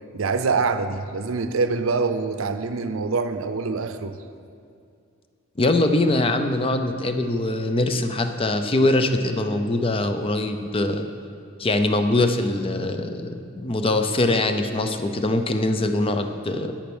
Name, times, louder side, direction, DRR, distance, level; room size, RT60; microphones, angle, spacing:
voice 1, 0.1-4.2, right 4 dB, 75° right, 9 dB, 0.6 m, -25 dB
voice 2, 5.6-11.1 11.6-16.7, left 2 dB, 25° left, 7 dB, 0.6 m, -22 dB
8.7 x 8.5 x 6.2 m, 2.3 s
head